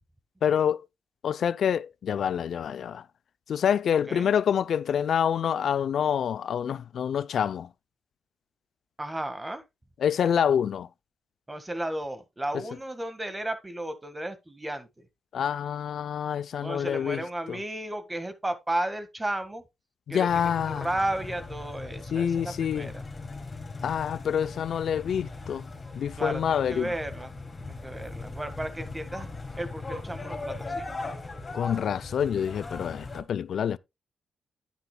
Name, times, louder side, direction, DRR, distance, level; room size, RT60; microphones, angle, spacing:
voice 1, 0.4-0.9 1.2-3.0 3.5-7.7 10.0-10.9 15.3-17.6 20.1-20.9 22.1-22.9 23.8-25.7 25.9-26.9 31.5-33.8, left 8 dB, 70° left, 0.4 m, -27 dB
voice 2, 9.0-9.6 11.5-15.1 16.6-19.6 20.1-23.0 26.2-29.3 29.6-31.1, right 1 dB, 15° right, 1.6 m, -34 dB
sound 1, 20.3-33.2, left 3 dB, 35° left, 3.7 m, -39 dB
9.7 x 9.4 x 2.3 m
cardioid pair, 80°, 0 cm